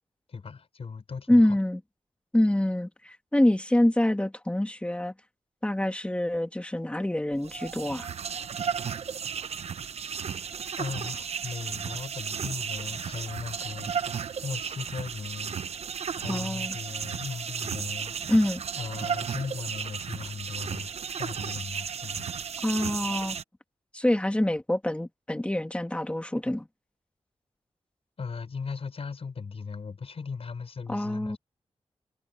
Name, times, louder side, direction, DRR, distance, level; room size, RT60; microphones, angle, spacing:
voice 1, 0.3-1.6 9.4-9.5 10.8-15.6 16.1-18.2 18.8-20.9 21.2-22.3 28.2-31.4, left 5 dB, 70° left, 6.2 m, -38 dB
voice 2, 1.3-1.8 2.3-5.1 5.6-8.1 16.3-16.8 18.3-18.6 22.6-23.4 23.9-26.7 30.9-31.4, left 1 dB, 10° left, 1.8 m, -25 dB
sound 1, 7.3-23.4, right 7 dB, 80° right, 0.8 m, -34 dB
wide cardioid pair, 75°, 11 cm